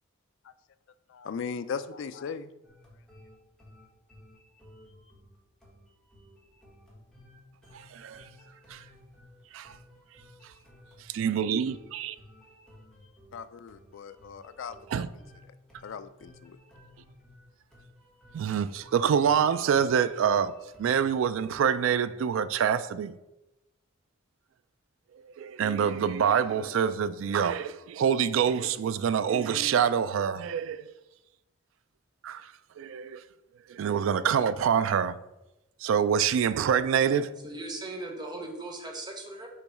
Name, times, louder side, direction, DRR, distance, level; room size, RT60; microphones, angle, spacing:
voice 1, 1.1-2.5 13.3-15.0 15.8-16.6, left 6 dB, 65° left, 0.3 m, -38 dB
sound 1, 2.6-21.2, left 1 dB, 5° left, 1.4 m, -55 dB
voice 2, 7.7-8.2 8.7-8.8 9.5-9.7 11.1-12.2 14.9-15.1 18.3-23.1 25.4-30.9 32.2-32.5 32.8-33.2 33.7-35.2 35.8-37.3, right 7 dB, 70° right, 0.3 m, -26 dB
voice 3, 37.4-39.5, right 2 dB, 20° right, 0.9 m, -38 dB
6.6 x 3.0 x 4.7 m
head